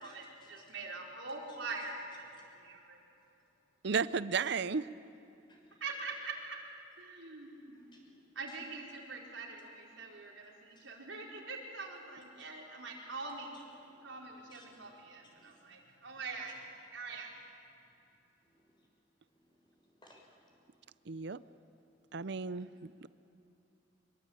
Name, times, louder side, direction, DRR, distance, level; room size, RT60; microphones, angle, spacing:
voice 1, 0.0-2.3 2.5-3.0 5.8-6.6 7.0-7.8 8.3-13.5 14.0-16.6 16.9-17.3, right 3 dB, 85° right, -1 dB, 4.8 m, -44 dB
voice 2, 3.8-4.9 21.1-21.4 22.1-23.1, right 5 dB, 60° right, 15 dB, 0.6 m, -34 dB
voice 3, 5.5-5.8 7.7-8.6 10.8-10.9 14.5-14.8 15.4-15.5 18.6-18.9 19.4-20.5 21.1-21.4 22.5-22.9, left 1 dB, 25° left, -1 dB, 6.5 m, -64 dB
25.5 x 23.0 x 8.9 m, 2.8 s
head